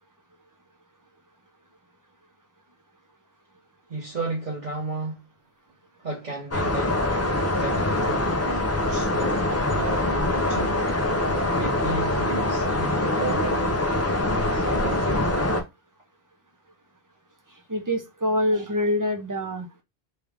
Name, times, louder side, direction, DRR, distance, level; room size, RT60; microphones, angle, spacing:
voice 1, 3.9-5.2 6.0-7.0 7.4-10.8 11.3-13.6 14.4-15.3, right 3 dB, 50° right, 0.9 m, -34 dB
sound 1, 6.5-15.6, left 1 dB, 25° left, 0.3 m, -24 dB
voice 2, 17.7-19.8, left 1 dB, 25° right, 0.6 m, -25 dB
3.3 x 2.4 x 3.3 m
omnidirectional pair, 1.0 m